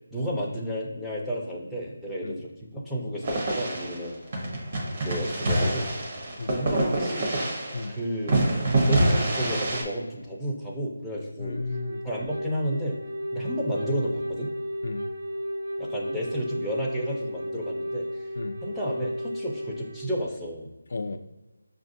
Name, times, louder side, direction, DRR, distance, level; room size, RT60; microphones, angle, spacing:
voice 1, 0.1-4.2 5.0-5.9 6.5-7.3 7.9-8.4 8.9-11.6 12.0-13.0 13.3-14.5 15.8-18.2 18.6-20.7, equal, ahead, -7 dB, 0.5 m, -32 dB
sound 1, 3.2-8.0 8.3-9.8, right 1 dB, 40° right, 0.9 m, -26 dB
voice 2, 11.4-12.0 14.8-15.1 18.4-18.6 20.9-21.2, left 3 dB, 55° left, 6 dB, 0.3 m, -33 dB
Wind instrument woodwind instrument, 11.5-20.1, equal, 70° right, 1.1 m, -34 dB
5.8 x 2.4 x 2.6 m, 1.1 s
figure-of-eight pair, 165°, 0 cm